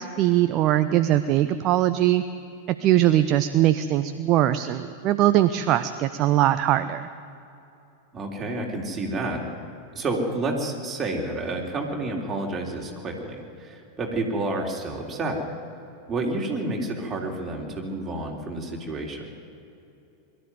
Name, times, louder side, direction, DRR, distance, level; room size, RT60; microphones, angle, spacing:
voice 1, 0.0-2.2 2.8-7.1, right 13 dB, 35° right, 11 dB, 0.6 m, -21 dB
voice 2, 8.1-9.4 9.9-15.4 16.1-19.3, right 2 dB, 20° right, 0 dB, 3.6 m, -29 dB
22.0 x 13.0 x 9.5 m, 2.8 s
figure-of-eight pair, 90°, 0 cm